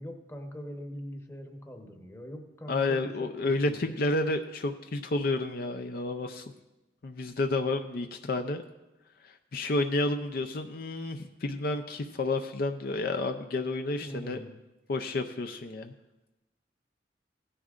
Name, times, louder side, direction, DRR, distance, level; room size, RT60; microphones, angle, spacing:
voice 1, 0.0-4.0 14.0-14.5, equal, 15° left, 3 dB, 0.9 m, -42 dB
voice 2, 2.7-6.4 7.0-8.6 9.2-14.4 14.9-15.9, left 2 dB, 55° left, 7 dB, 0.5 m, -30 dB
16.5 x 9.9 x 2.5 m, 0.98 s
head